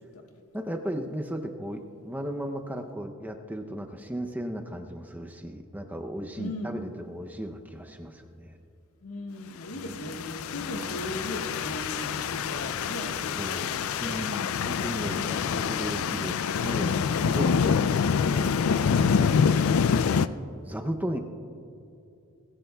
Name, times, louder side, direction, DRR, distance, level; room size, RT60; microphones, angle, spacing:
voice 1, 0.5-8.6 9.7-10.1 13.4-19.2 20.6-21.2, equal, 10° right, 4 dB, 0.6 m, -36 dB
voice 2, 6.4-6.7 9.0-14.2 14.8-15.6, left 1 dB, 85° left, 3 dB, 1.5 m, -38 dB
sound 1, 9.9-20.3, left 6 dB, 70° left, 0.4 m, -26 dB
19.5 x 16.5 x 2.3 m, 2.6 s
head